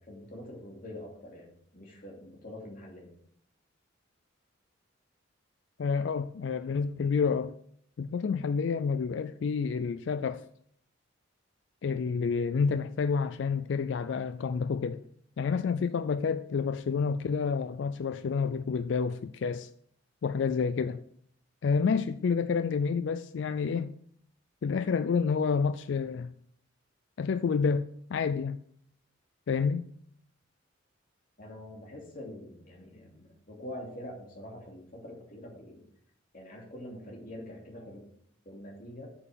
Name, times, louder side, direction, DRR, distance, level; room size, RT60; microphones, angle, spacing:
voice 1, 0.0-3.1 31.4-35.8 36.3-38.1 38.4-39.1, left 1 dB, 45° left, 2.8 m, -45 dB
voice 2, 5.8-7.5 8.0-10.5 11.8-15.0 15.4-19.7 20.2-21.0 21.6-23.9 24.6-26.3 27.2-28.6 29.5-29.9, left 5 dB, 65° left, 0.4 m, -29 dB
8.8 x 7.0 x 5.1 m
head